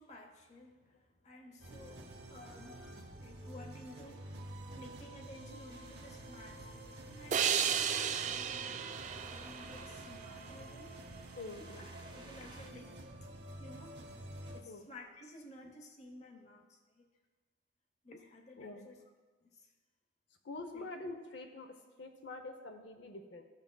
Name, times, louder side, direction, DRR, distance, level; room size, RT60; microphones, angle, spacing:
voice 1, 0.0-8.9 9.2-11.0 11.4-12.9 13.6-14.0 14.5-17.1 18.0-19.0 19.4-19.7 20.7-20.9, left 1 dB, 40° left, 3 dB, 0.8 m, -54 dB
sound 1, 1.6-14.6, right 1 dB, 65° right, 0.8 m, -49 dB
sound 2, 5.7-12.7, right 3 dB, 25° right, 0.7 m, -57 dB
sound 3, 7.3-10.6, right 8 dB, 40° right, 0.3 m, -34 dB
voice 2, 11.4-11.9 14.6-14.9 18.6-18.9 20.4-23.4, left 2 dB, 75° left, 5 dB, 0.7 m, -46 dB
13.5 x 5.7 x 2.2 m, 1.3 s
head